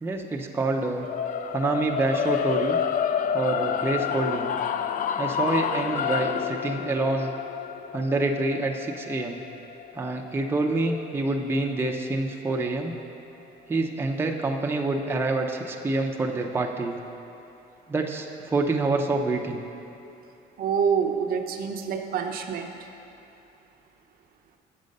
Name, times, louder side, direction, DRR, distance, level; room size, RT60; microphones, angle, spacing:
voice 1, 0.0-1.1 1.5-2.8 3.3-4.5 5.2-7.3 7.9-9.4 10.0-12.9 13.7-17.0 17.9-19.6, right 2 dB, 15° right, 1 dB, 0.5 m, -27 dB
sound 1, 1.0-11.2, left 8 dB, 50° left, 0.4 m, -29 dB
voice 2, 20.6-22.9, right 7 dB, 60° right, 4 dB, 0.6 m, -27 dB
7.3 x 6.5 x 5.3 m, 2.8 s
cardioid pair, 110°, 17 cm